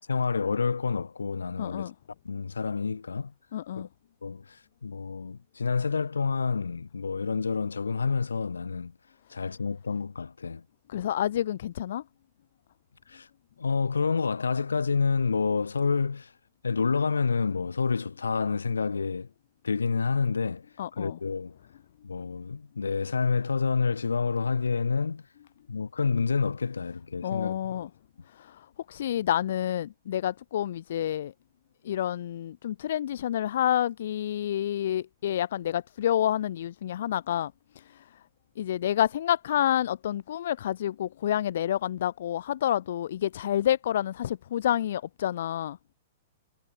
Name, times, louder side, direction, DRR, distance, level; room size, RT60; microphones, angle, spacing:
voice 1, 0.1-1.9 2.2-3.3 3.8-3.9 4.2-8.9 9.3-10.6 13.1-13.3 13.6-16.3 16.6-19.3 19.6-20.7 20.9-21.6 22.0-25.2 25.7-27.9, left 5 dB, 80° left, 3.7 m, -28 dB
voice 2, 1.6-1.9 3.5-3.9 10.9-12.0 20.8-21.2 27.2-27.9 28.3-31.3 31.8-38.2 38.6-45.8, left 11 dB, 60° left, 1.0 m, -29 dB
figure-of-eight pair, 110°, 0 cm